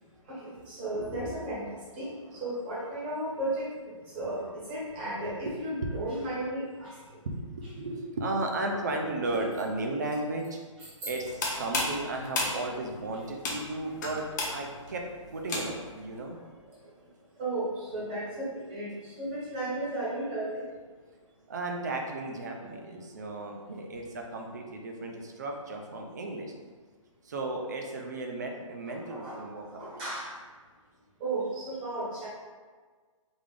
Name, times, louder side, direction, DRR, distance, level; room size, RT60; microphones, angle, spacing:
voice 1, 0.3-7.2 9.3-9.4 16.7-16.9 17.4-20.6 28.9-30.4 31.2-32.3, right 1 dB, 15° right, -8 dB, 0.8 m, -35 dB
voice 2, 5.2-5.5 7.2-10.6 11.0-15.0 15.3-16.4 21.5-26.5 27.2-29.9, right 2 dB, 35° right, 2 dB, 0.4 m, -35 dB
sound 1, 11.1-16.0, left 2 dB, 35° left, 0.6 m, -34 dB
3.4 x 2.4 x 3.5 m, 1.5 s
hypercardioid pair, 170°, 17 cm